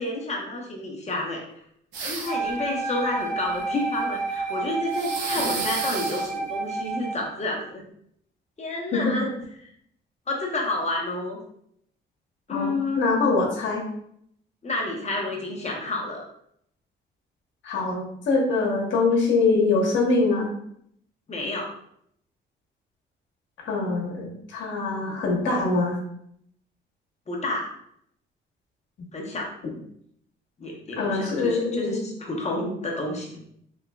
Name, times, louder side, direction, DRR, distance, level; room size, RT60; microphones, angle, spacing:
voice 1, 0.0-1.4 2.0-7.8 8.6-9.3 10.3-11.4 12.5-13.0 14.6-16.2 21.3-21.7 27.3-27.7 29.1-29.5 30.6-33.4, left 2 dB, 35° left, -1 dB, 1.1 m, -30 dB
sound 1, 1.9-2.5 4.9-6.3, right 3 dB, 80° right, 0.9 m, -31 dB
Wind instrument woodwind instrument, 2.2-7.3, right 4 dB, 40° right, 1.1 m, -30 dB
voice 2, 12.5-13.9 17.6-20.5 23.6-26.0 29.0-29.1 29.6-29.7 31.0-32.0, left 3 dB, 70° left, -1 dB, 1.2 m, -24 dB
3.6 x 3.5 x 2.3 m, 0.70 s
cardioid pair, 90°, 20 cm